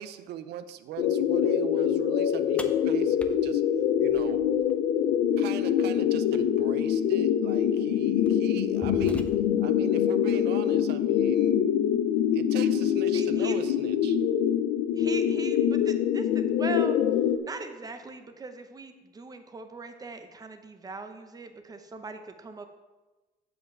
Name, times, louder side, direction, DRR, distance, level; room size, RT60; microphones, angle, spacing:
voice 1, 0.0-3.6 4.0-4.5 5.4-9.3 9.6-11.6 12.3-14.2, right 10 dB, 75° right, 12 dB, 0.6 m, -40 dB
sound 1, 1.0-17.4, left 9 dB, 90° left, 0.5 m, -25 dB
sound 2, 2.6-4.7 6.6-6.7 7.6-7.8 8.3-9.7, left 2 dB, 5° left, 0.5 m, -42 dB
voice 2, 13.1-13.6 15.0-17.0 17.4-22.7, right 3 dB, 20° right, 7 dB, 0.8 m, -39 dB
7.4 x 5.2 x 5.8 m, 1.2 s
cardioid pair, 110°, 17 cm